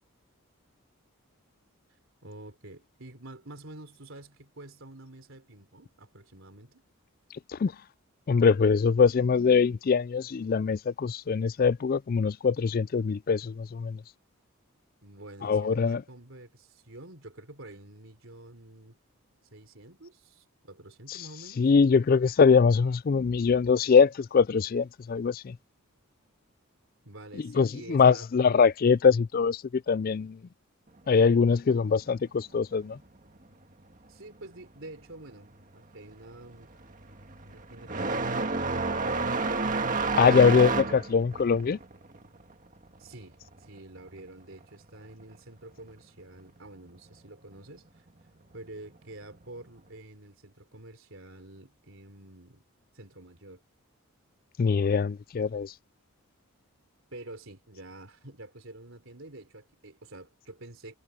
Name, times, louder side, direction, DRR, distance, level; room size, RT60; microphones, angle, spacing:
voice 1, 2.2-6.8 15.0-19.0 19.5-21.7 27.0-28.3 34.1-36.7 37.4-39.3 43.0-48.1 48.5-52.7 52.9-53.6 57.1-61.0, right 2 dB, 65° right, 3.9 m, -48 dB
voice 2, 8.3-14.0 15.4-16.0 21.1-21.2 21.6-25.6 27.3-30.4 31.1-33.0 40.2-41.8 54.6-55.7, left 5 dB, 40° left, 0.3 m, -23 dB
sound 1, 35.3-35.6 35.9-44.3 44.5-45.6 46.6-46.7 47.5-47.6 49.3-49.5, right 3 dB, 35° right, 1.8 m, -30 dB
head